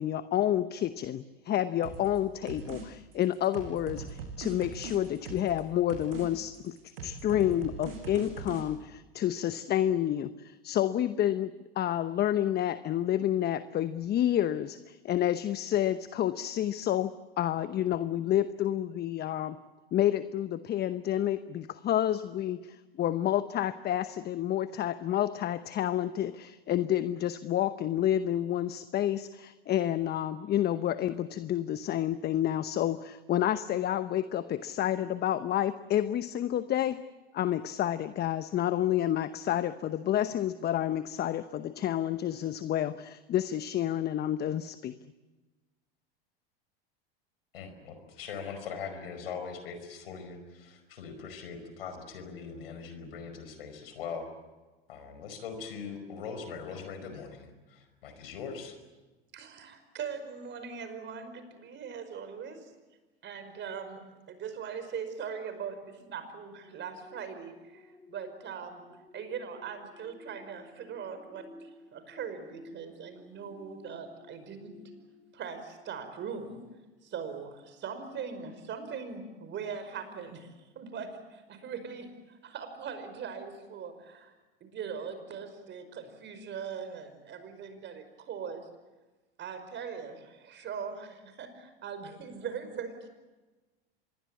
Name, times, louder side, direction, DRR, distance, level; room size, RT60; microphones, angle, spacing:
voice 1, 0.0-6.8 7.0-19.6 19.9-37.0 37.3-45.0, left 11 dB, 35° left, 13 dB, 0.9 m, -29 dB
sound 1, 1.8-2.2 2.5-2.8 3.1-5.6 5.9-6.3 6.5-8.6, right 5 dB, 75° right, 6.9 m, -41 dB
voice 2, 47.5-54.3 54.9-58.8, left 6 dB, 75° left, 8 dB, 5.1 m, -41 dB
voice 3, 59.3-62.7 63.2-68.8 69.1-74.7 75.3-76.6 77.0-80.5 80.8-84.3 84.6-88.7 89.4-93.1, right 6 dB, 40° right, 9 dB, 5.3 m, -41 dB
sound 2, 66.6-76.5 77.0-77.2, left 3 dB, 10° left, 3.7 m, -55 dB
26.0 x 21.5 x 8.5 m, 1.2 s
hypercardioid pair, 90°, 29 cm